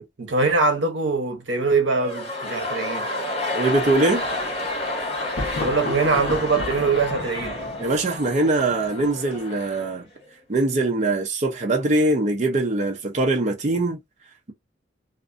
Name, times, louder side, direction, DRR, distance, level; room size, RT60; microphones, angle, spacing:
voice 1, 0.0-3.1 5.6-7.6, right 3 dB, 75° right, 0.8 m, -23 dB
sound 1, 1.9-10.0 10.2-10.3, left 2 dB, 30° left, 1.4 m, -30 dB
voice 2, 3.5-4.3 7.8-10.1 10.5-14.0, right 2 dB, 40° right, 0.5 m, -22 dB
Thunder, 3.8-9.6, left 2 dB, 75° left, 1.0 m, -34 dB
2.4 x 2.4 x 2.4 m
head